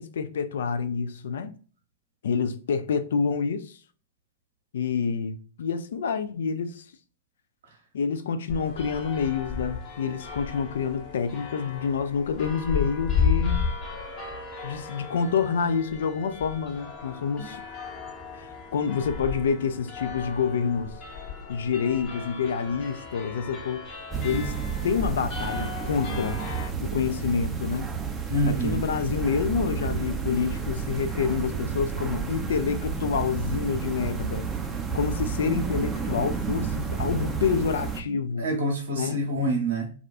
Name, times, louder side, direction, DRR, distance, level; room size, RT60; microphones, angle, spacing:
voice 1, 0.0-1.5 2.2-3.8 4.7-6.8 7.9-13.7 14.6-17.6 18.4-20.9 21.5-23.8 24.2-24.5 24.8-26.4 26.8-27.9 28.5-34.5 34.9-38.5 39.0-39.2, left 6 dB, 65° left, 0.3 m, -28 dB
sound 1, 8.5-26.7, left 6 dB, 40° left, 0.9 m, -34 dB
sound 2, 24.1-38.0, right 6 dB, 15° right, 0.5 m, -31 dB
voice 2, 28.3-28.8 38.0-39.9, right 1 dB, 65° right, 0.8 m, -27 dB
2.4 x 2.3 x 2.3 m
figure-of-eight pair, 100°, 0 cm